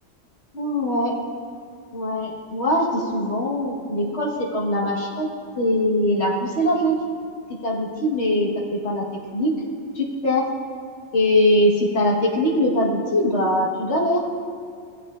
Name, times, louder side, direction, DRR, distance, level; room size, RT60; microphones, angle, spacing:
voice 1, 0.5-1.1 1.9-5.3 5.6-7.0 7.6-9.0 9.3-9.6 9.9-10.5 11.1-14.2, left 1 dB, 70° left, -4 dB, 1.6 m, -22 dB
17.5 x 7.8 x 2.4 m, 2.2 s
omnidirectional pair, 1.2 m